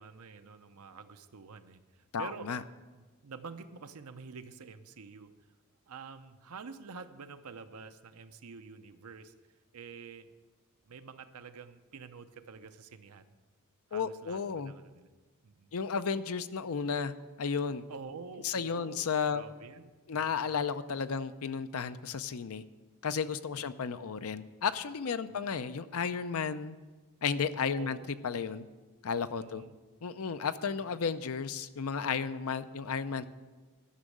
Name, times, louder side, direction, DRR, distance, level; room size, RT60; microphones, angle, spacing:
voice 1, 0.0-2.5 2.9-5.3 5.9-9.3 9.7-10.3 10.9-13.3 13.9-15.1 15.4-15.7 17.9-19.0 19.3-20.5 23.5-23.6 25.3-25.5 27.8-28.1 29.4-29.8 30.8-31.0, right 5 dB, 80° right, 9 dB, 0.7 m, -48 dB
voice 2, 2.1-2.6 13.9-14.7 15.7-17.1 17.4-17.8 18.4-19.4 20.1-22.6 23.0-26.8 27.2-28.0 28.2-28.7 29.0-29.6 30.0-33.3, left 6 dB, 70° left, 12 dB, 0.6 m, -33 dB
11.5 x 6.2 x 7.9 m, 1.3 s
head